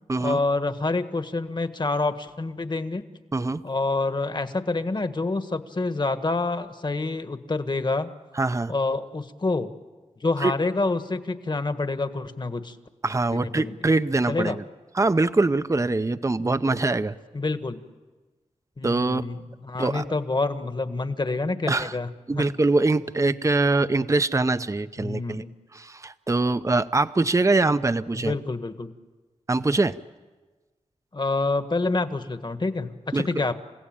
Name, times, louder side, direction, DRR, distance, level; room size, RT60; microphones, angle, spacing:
voice 1, 0.2-3.0 3.6-8.1 8.7-9.7 10.2-12.7 13.3-13.7 14.3-14.6 17.3-17.8 18.8-22.1 22.4-22.5 25.0-25.5 28.1-28.9 31.1-33.5, left 3 dB, 40° left, 9 dB, 1.6 m, -27 dB
voice 2, 8.3-8.7 10.4-10.5 13.0-14.6 14.9-17.2 18.8-19.2 19.8-20.0 21.7-21.9 22.3-25.5 25.7-28.4 29.5-30.0 33.1-33.3, right 3 dB, 25° right, 12 dB, 0.7 m, -23 dB
30.0 x 16.0 x 8.9 m, 1.3 s
cardioid pair, 55°, 12 cm